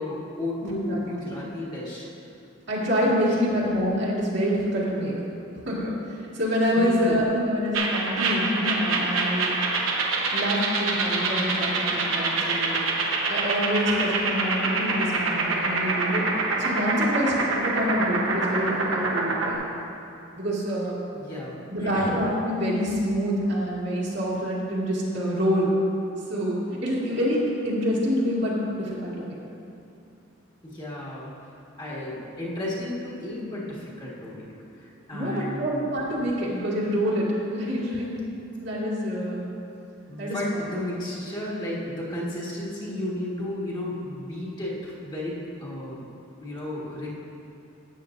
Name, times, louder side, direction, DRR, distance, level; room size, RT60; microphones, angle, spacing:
voice 1, 0.0-2.1 3.0-3.5 6.7-7.2 21.1-22.2 30.6-31.3 31.8-34.5 34.8-36.0 40.1-46.0 46.4-47.1, left 1 dB, 20° left, -6 dB, 1.6 m, -33 dB
voice 2, 0.6-1.4 2.7-5.1 5.7-9.5 10.3-12.8 13.3-16.3 16.6-19.6 20.4-21.0 21.7-25.7 26.3-29.4 35.1-38.1 38.6-39.4 40.2-40.6, equal, 55° right, -6 dB, 2.0 m, -26 dB
sound 1, 7.7-19.6, right 3 dB, 80° right, 1.1 m, -26 dB
12.5 x 8.6 x 2.6 m, 2.7 s
head